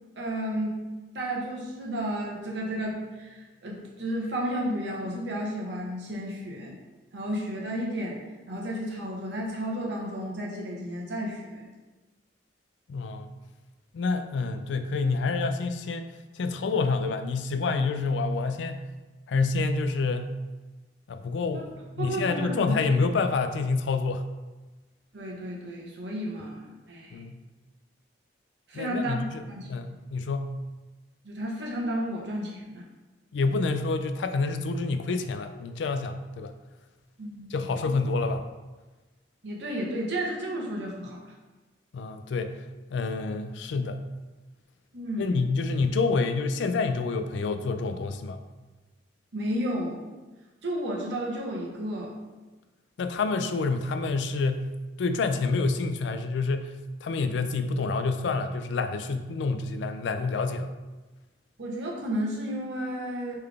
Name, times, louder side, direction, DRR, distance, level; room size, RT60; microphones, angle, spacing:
voice 1, 0.2-0.8 1.1-6.8 7.1-11.7 21.5-21.6 22.0-22.8 25.1-27.2 28.7-29.7 31.2-32.8 37.2-37.9 39.4-41.3 44.9-45.3 49.3-50.1 50.6-52.2 61.6-63.4, equal, 70° right, -2 dB, 1.0 m, -32 dB
voice 2, 12.9-13.3 13.9-16.1 16.4-18.8 19.3-20.3 21.1-21.7 22.0-24.2 27.1-27.4 28.7-29.4 29.7-30.5 33.3-36.5 37.5-38.4 41.9-42.5 42.9-44.0 45.2-48.4 53.0-54.7 55.0-56.7 57.0-60.7, left 4 dB, 80° left, 8 dB, 0.4 m, -28 dB
3.8 x 3.3 x 3.4 m, 1.2 s
head